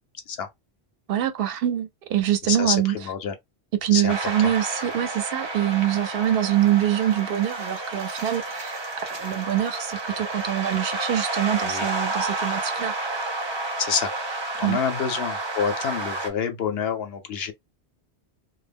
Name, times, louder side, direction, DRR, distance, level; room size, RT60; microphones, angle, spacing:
voice 1, 1.1-2.9 3.8-8.8 9.1-12.9 14.6-14.8, right 12 dB, 65° right, 0.7 m, -24 dB
voice 2, 2.4-3.3 3.9-4.2 4.4-4.5 11.5-11.9 13.8-14.1 14.6-17.5, left 7 dB, 75° left, 0.8 m, -27 dB
sound 1, 4.1-16.3, right 2 dB, 30° right, 0.5 m, -31 dB
2.2 x 2.0 x 3.4 m
omnidirectional pair, 1.1 m